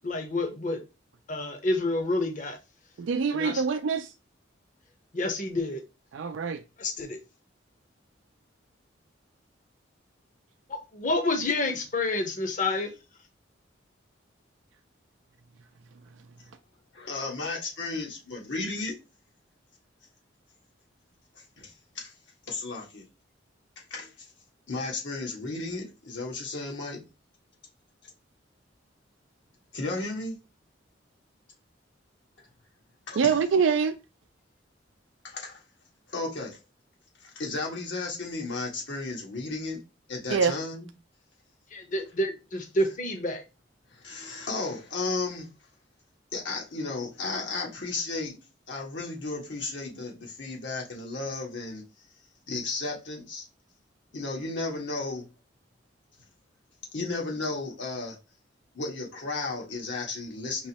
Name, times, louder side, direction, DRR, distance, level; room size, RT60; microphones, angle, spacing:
voice 1, 0.0-0.8 1.3-2.6 3.3-3.6 5.1-5.8 6.8-7.2 10.7-12.9 41.7-43.4, left 2 dB, 45° left, 0.9 m, -28 dB
voice 2, 3.0-4.1 6.1-6.6 33.2-33.9 40.3-40.6, right 6 dB, 85° right, 0.4 m, -24 dB
voice 3, 16.9-19.0 21.3-22.1 22.5-23.0 23.9-24.3 24.7-27.0 29.7-30.4 33.1-33.3 35.2-35.6 36.1-36.6 37.2-39.8 40.1-40.9 43.9-45.5 46.3-48.4 48.7-51.8 52.5-53.5 54.1-55.3 56.9-58.2 58.7-60.7, left 3 dB, 75° left, 1.6 m, -34 dB
5.3 x 3.0 x 2.8 m
head